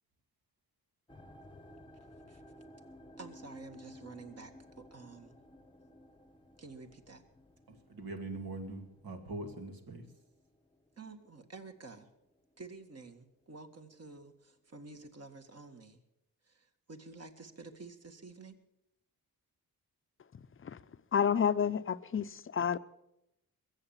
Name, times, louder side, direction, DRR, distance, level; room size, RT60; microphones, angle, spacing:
sound 1, 1.1-12.3 12.5-13.2 13.7-13.8, left 1 dB, 15° left, 1.0 m, -56 dB
voice 1, 3.2-5.4 6.6-7.2 11.0-12.1 12.6-16.0 16.4-18.6, right 3 dB, 45° right, 1.8 m, -50 dB
voice 2, 7.7-10.0, right 2 dB, 80° right, 2.5 m, -42 dB
voice 3, 21.1-22.8, left 7 dB, 35° left, 0.6 m, -30 dB
22.0 x 7.8 x 7.3 m
cardioid pair, 95°, 36 cm